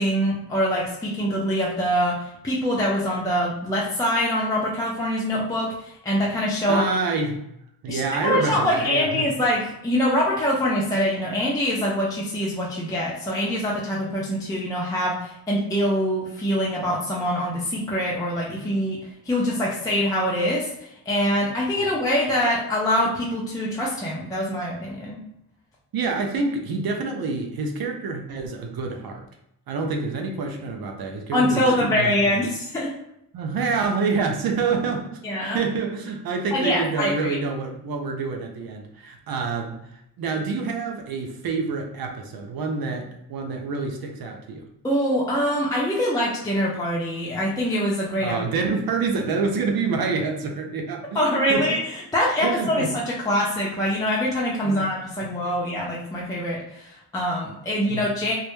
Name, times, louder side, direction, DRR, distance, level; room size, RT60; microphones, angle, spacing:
voice 1, 0.0-6.9 7.9-19.0 19.2-25.2 31.3-32.9 35.2-35.6 36.5-37.4 44.8-48.4 51.1-58.3, equal, 10° left, -5 dB, 0.5 m, -24 dB
voice 2, 6.7-7.4 7.8-9.3 21.8-21.9 25.9-29.2 29.7-32.1 33.3-39.8 40.2-44.7 48.2-51.2 51.5-51.8 52.4-52.9 54.6-54.9 55.2-55.3 57.9-58.0, right 4 dB, 55° right, 3 dB, 0.6 m, -27 dB
2.1 x 2.0 x 3.0 m, 0.78 s
supercardioid pair, 65°, 44 cm